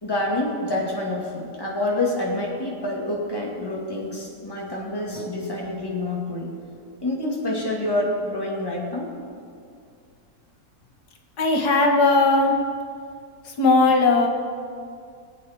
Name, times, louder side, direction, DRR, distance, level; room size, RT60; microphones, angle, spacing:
voice 1, 0.0-6.5 7.0-9.1, left 1 dB, 15° left, -3 dB, 2.3 m, -27 dB
voice 2, 11.4-12.6 13.5-14.3, left 3 dB, 85° left, 2 dB, 1.9 m, -18 dB
22.0 x 8.5 x 4.5 m, 2.3 s
omnidirectional pair, 1.7 m